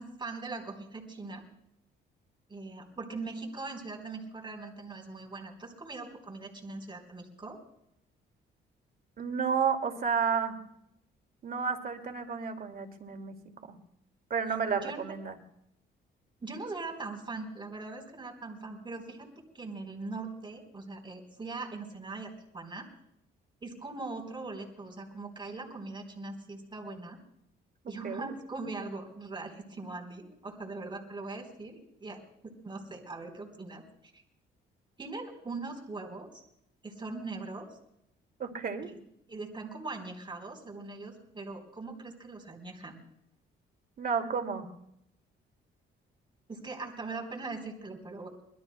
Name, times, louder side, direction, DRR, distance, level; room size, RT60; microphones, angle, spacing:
voice 1, 0.0-1.4 2.5-7.6 14.8-15.0 16.4-22.9 23.6-27.2 27.8-33.8 34.1-34.2 35.0-36.4 36.8-37.7 39.3-43.0 46.5-48.3, right 3 dB, 25° right, 3 dB, 4.0 m, -41 dB
voice 2, 9.2-10.6 11.4-13.4 13.6-13.8 14.3-15.4 27.8-28.3 38.4-38.9 44.0-44.7, right 6 dB, 50° right, 5 dB, 2.4 m, -31 dB
26.0 x 21.5 x 2.2 m, 0.76 s
cardioid pair, 90°, 20 cm